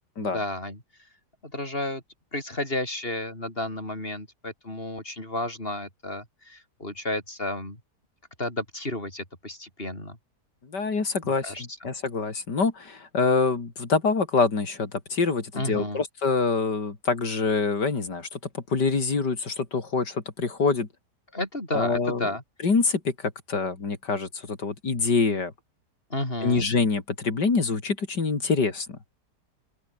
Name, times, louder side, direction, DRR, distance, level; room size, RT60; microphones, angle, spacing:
voice 1, 0.2-0.8 1.4-2.0 2.3-7.8 8.4-10.2 11.2-11.7 15.5-16.0 21.3-22.4 26.1-26.7, left 1 dB, 30° left, 8.1 m, -32 dB
voice 2, 10.7-20.9 21.7-22.3 22.6-25.5 26.4-29.0, left 4 dB, 80° left, 3.8 m, -25 dB
open air
omnidirectional pair, 1.8 m